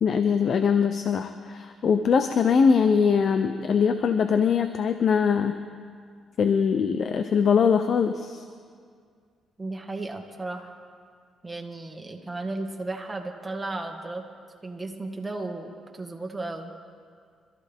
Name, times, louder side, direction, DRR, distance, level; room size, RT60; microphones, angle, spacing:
voice 1, 0.0-5.6 6.4-8.4, left 6 dB, 55° left, 9 dB, 0.7 m, -22 dB
voice 2, 9.6-10.7 11.4-14.2 14.6-16.7, right 2 dB, 15° right, 2 dB, 1.9 m, -34 dB
25.5 x 14.0 x 3.6 m, 2.1 s
cardioid pair, 90°, 0 cm